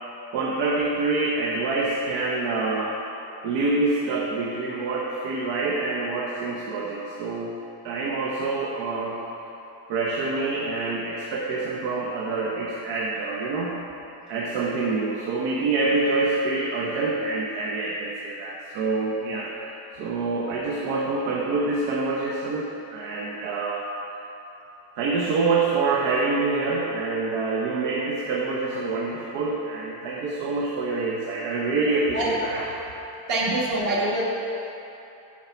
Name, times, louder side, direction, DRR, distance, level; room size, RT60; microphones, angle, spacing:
voice 1, 0.3-3.0 3.4-7.5 7.8-9.2 9.9-13.8 14.3-19.5 20.0-23.9 25.0-32.7 33.5-33.6, right 3 dB, 90° right, -3 dB, 1.1 m, -26 dB
voice 2, 33.3-34.2, right 1 dB, 55° right, -4 dB, 1.5 m, -24 dB
8.8 x 4.7 x 6.1 m, 3.0 s
cardioid pair, 180°, 43 cm